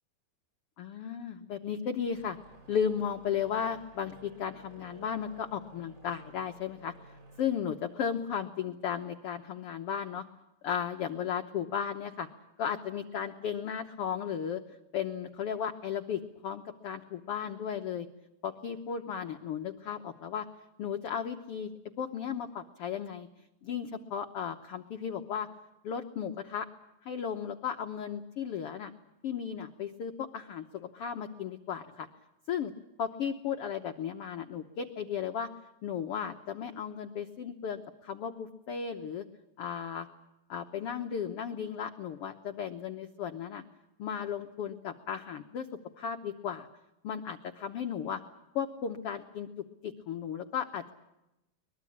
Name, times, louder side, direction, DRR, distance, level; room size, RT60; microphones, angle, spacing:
voice 1, 0.8-2.4 2.7-7.1 7.4-10.2 10.6-12.3 12.6-18.1 18.4-20.5 20.8-21.7 22.0-23.3 23.6-25.5 25.8-26.7 27.0-28.9 29.2-32.1 32.5-32.7 33.0-35.5 35.8-39.2 39.6-40.1 40.5-43.6 44.0-45.7 46.0-46.7 47.0-48.2 48.5-50.9, left 8 dB, 75° left, 7 dB, 1.3 m, -35 dB
sound 1, 1.9-9.3, right 2 dB, 30° right, 4.0 m, -56 dB
23.0 x 21.0 x 8.6 m, 0.93 s
omnidirectional pair, 3.9 m